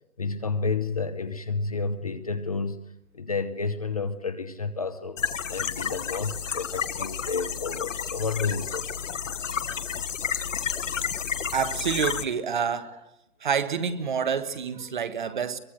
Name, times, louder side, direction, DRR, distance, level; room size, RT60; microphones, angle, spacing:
voice 1, 0.2-2.8 3.1-9.0, left 4 dB, 25° left, 0.9 m, -30 dB
sound 1, 5.2-12.2, left 7 dB, 60° left, 1.5 m, -31 dB
voice 2, 11.5-13.0 13.4-15.6, right 7 dB, 35° right, 1.4 m, -28 dB
23.5 x 22.5 x 7.9 m
hypercardioid pair, 175°, 44 cm